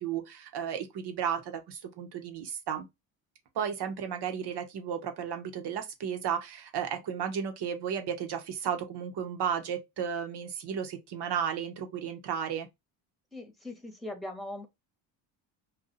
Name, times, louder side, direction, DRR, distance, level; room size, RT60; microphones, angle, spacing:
voice 1, 0.0-2.8 3.5-12.7, right 8 dB, 65° right, 1.1 m, -33 dB
voice 2, 13.3-14.7, left 1 dB, ahead, 1.0 m, -40 dB
2.7 x 2.5 x 3.8 m
cardioid pair, 95°, 44 cm